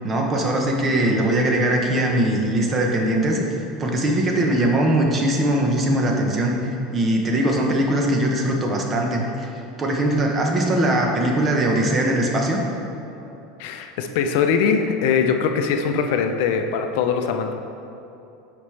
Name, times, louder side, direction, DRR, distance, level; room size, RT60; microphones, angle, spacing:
voice 1, 0.0-3.5 3.8-9.5 9.8-12.6, right 1 dB, 20° right, 1 dB, 0.7 m, -21 dB
voice 2, 13.6-17.5, left 6 dB, 65° left, 5 dB, 0.5 m, -21 dB
8.6 x 5.0 x 3.2 m, 2.7 s
supercardioid pair, 160°, 0 cm